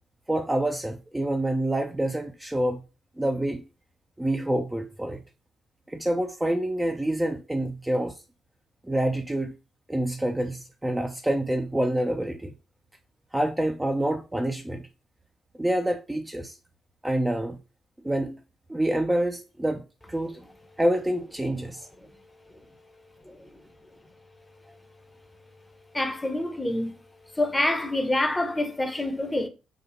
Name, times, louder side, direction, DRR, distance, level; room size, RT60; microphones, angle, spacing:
voice 1, 0.3-2.8 3.2-3.6 4.2-5.2 5.9-8.1 8.9-9.6 9.9-12.5 13.3-14.9 15.6-16.6 17.0-17.6 18.0-18.4 18.7-20.4 20.8-21.9, right 1 dB, 10° right, 0.5 m, -27 dB
voice 2, 25.9-26.9 27.3-29.5, left 1 dB, 15° left, 0.7 m, -26 dB
4.0 x 2.3 x 3.1 m
figure-of-eight pair, 40°, 0 cm